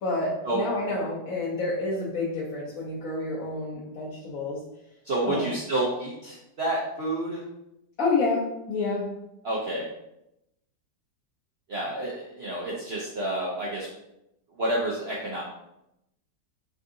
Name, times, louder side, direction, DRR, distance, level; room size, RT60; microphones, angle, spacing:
voice 1, 0.0-4.6 5.2-5.5 8.0-9.1, left 3 dB, 60° left, -7 dB, 1.0 m, -29 dB
voice 2, 5.0-7.4 9.4-9.9 11.7-13.9 14.6-15.4, right 1 dB, 70° right, -5 dB, 0.5 m, -29 dB
3.6 x 2.6 x 3.6 m, 0.84 s
omnidirectional pair, 2.0 m